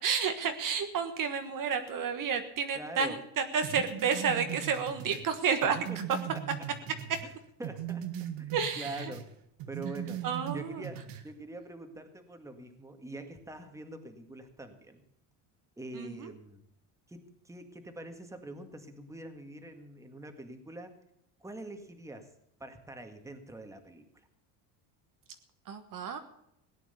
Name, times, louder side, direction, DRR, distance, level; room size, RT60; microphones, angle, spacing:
voice 1, 0.0-5.8 8.5-9.1 10.2-10.8 15.9-16.3 25.7-26.2, right 6 dB, 45° right, 7 dB, 1.5 m, -31 dB
voice 2, 2.7-3.2 5.9-6.4 7.2-7.3 7.6-9.2 9.7-10.2 10.5-15.0 15.8-16.6 17.1-21.0 21.4-22.3 22.6-24.3, right 1 dB, 5° right, 6 dB, 1.9 m, -44 dB
sound 1, 3.6-7.3 7.6-9.3 9.6-11.3, right 10 dB, 70° right, 1.5 m, -39 dB
17.5 x 9.3 x 6.9 m, 0.78 s
cardioid pair, 120°, 45 cm